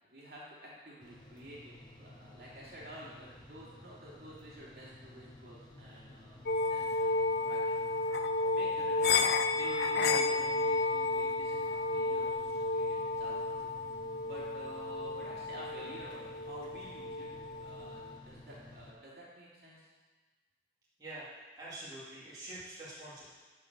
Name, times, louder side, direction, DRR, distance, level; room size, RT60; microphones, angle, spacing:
voice 1, 0.0-6.4 6.7-7.9 8.5-9.2 9.5-13.4 14.2-17.3 17.6-19.9, right 1 dB, 60° right, -6 dB, 2.7 m, -50 dB
sound 1, 1.0-18.9, left 1 dB, 25° left, 0.9 m, -54 dB
sound 2, 6.5-18.2, left 3 dB, 60° left, 0.4 m, -32 dB
voice 2, 21.0-23.3, right 1 dB, 20° right, -10 dB, 2.3 m, -46 dB
11.5 x 4.5 x 6.6 m, 1.4 s
head